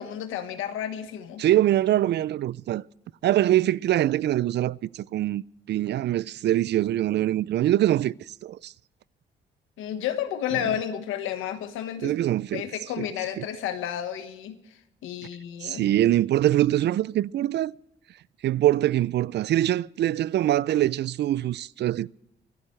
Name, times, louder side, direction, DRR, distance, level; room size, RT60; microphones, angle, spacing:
voice 1, 0.0-1.4 9.8-12.1 12.5-14.6 15.0-15.9, left 10 dB, 90° left, 1.4 m, -31 dB
voice 2, 1.4-2.8 3.2-5.4 5.7-8.7 12.0-12.6 13.0-13.1 13.4-13.5 15.6-17.7 18.4-22.1, right 13 dB, 60° right, 0.4 m, -23 dB
25.0 x 10.0 x 3.3 m
cardioid pair, 90°, 20 cm